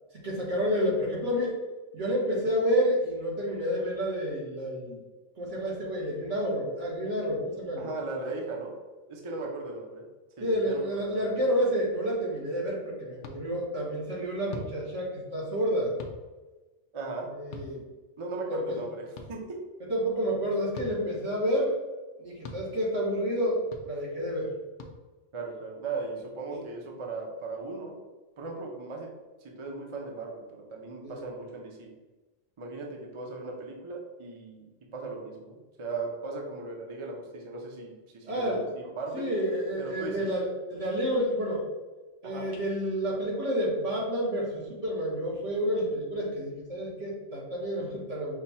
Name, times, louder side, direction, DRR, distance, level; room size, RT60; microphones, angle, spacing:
voice 1, 0.1-1.5 1.9-5.0 5.4-7.9 10.4-15.9 17.3-17.8 18.5-18.8 19.9-21.7 22.2-24.5 26.5-26.6 31.0-31.2 38.2-38.6 39.1-41.7 42.2-48.4, equal, 75° right, -4 dB, 1.7 m, -29 dB
voice 2, 7.8-8.7 9.1-10.1 10.4-10.8 11.1-11.3 16.9-17.3 18.2-19.6 25.3-28.0 28.4-29.1 29.6-31.9 32.6-34.7 34.9-39.3 39.8-40.3 42.2-42.5, right 3 dB, 35° right, 0 dB, 0.6 m, -37 dB
sound 1, 13.2-13.4 14.5-14.7 16.0-16.2 17.5-17.7 19.1-19.3 20.7-20.9 22.4-22.6 23.7-23.8 24.8-24.9, left 3 dB, 55° left, 0.6 m, -40 dB
5.2 x 2.3 x 4.1 m, 1.2 s
omnidirectional pair, 1.3 m